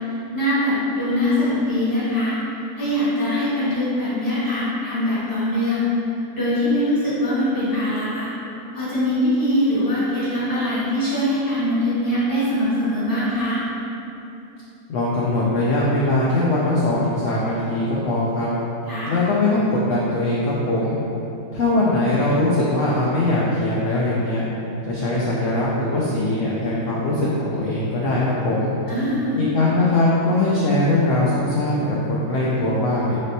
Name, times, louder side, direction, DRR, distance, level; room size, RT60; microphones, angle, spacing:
voice 1, 0.3-2.4 2.8-5.9 6.3-8.3 8.7-13.6 18.9-19.1 28.9-29.4, left 1 dB, 15° left, -11 dB, 1.1 m, -22 dB
voice 2, 14.9-18.5 19.1-21.0 21.5-24.4 24.9-28.7 29.3-33.2, left 2 dB, 70° left, -6 dB, 0.8 m, -21 dB
4.0 x 3.4 x 2.6 m, 3.0 s
omnidirectional pair, 1.7 m